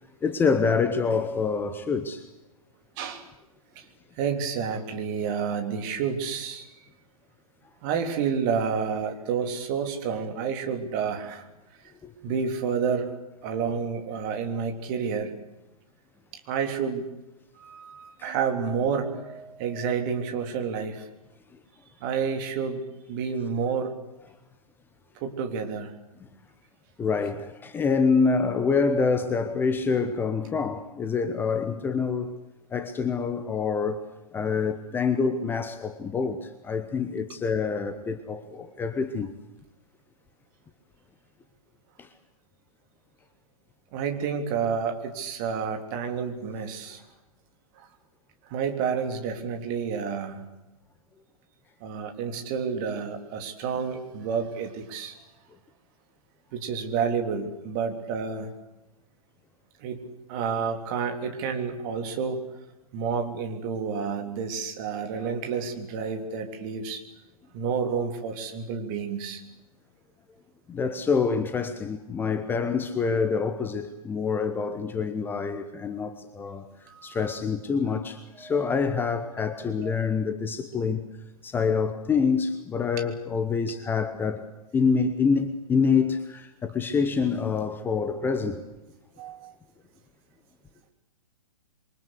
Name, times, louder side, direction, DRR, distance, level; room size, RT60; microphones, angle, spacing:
voice 1, 0.2-2.3 12.0-12.1 18.2-18.3 27.0-32.4 32.7-34.0 34.3-39.3 42.0-42.1 70.7-76.7 77.0-81.1 81.4-84.5 84.7-88.6, left 5 dB, 10° left, 1.1 m, -26 dB
voice 2, 3.0-3.3 3.8-3.9 4.2-6.7 7.8-11.5 11.8-11.9 12.2-13.2 13.4-15.3 16.5-17.1 17.6-21.1 22.0-23.9 25.2-25.9 43.9-47.0 47.8-47.9 48.5-50.4 51.8-55.2 56.5-58.5 59.8-62.5 62.9-67.0 67.5-69.4 76.9-77.4 78.3-78.6 79.8-80.0 89.2-89.5, right 6 dB, 30° right, 3.5 m, -30 dB
27.5 x 23.5 x 8.3 m
figure-of-eight pair, 120°, 19 cm